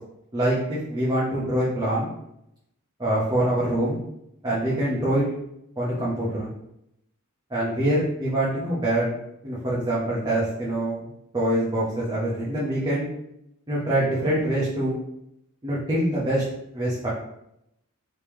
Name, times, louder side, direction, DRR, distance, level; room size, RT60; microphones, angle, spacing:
voice 1, 0.3-2.1 3.0-4.0 4.4-5.3 5.8-6.5 7.5-9.1 9.4-11.0 11.3-13.1 13.7-15.0 15.6-16.4 16.7-17.1, right 1 dB, 20° right, -8 dB, 0.7 m, -24 dB
3.2 x 2.9 x 3.4 m, 0.81 s
head